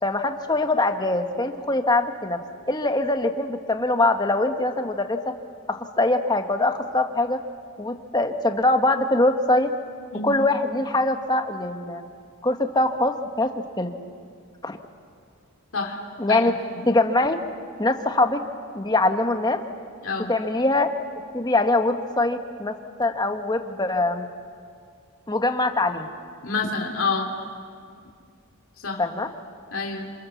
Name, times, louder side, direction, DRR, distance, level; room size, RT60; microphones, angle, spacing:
voice 1, 0.0-2.4 2.7-5.2 5.7-7.4 7.8-9.7 10.2-12.0 12.4-13.5 13.8-13.9 14.6-14.8 16.2-16.5 16.8-17.4 17.8-18.4 18.7-19.6 20.3-20.9 21.3-24.3 25.3-26.1 29.0-29.3, left 2 dB, 20° left, 6 dB, 1.3 m, -23 dB
voice 2, 26.4-27.3 28.8-29.0 29.7-30.1, left 4 dB, 70° left, 1 dB, 2.8 m, -27 dB
27.5 x 26.5 x 7.2 m, 2.2 s
head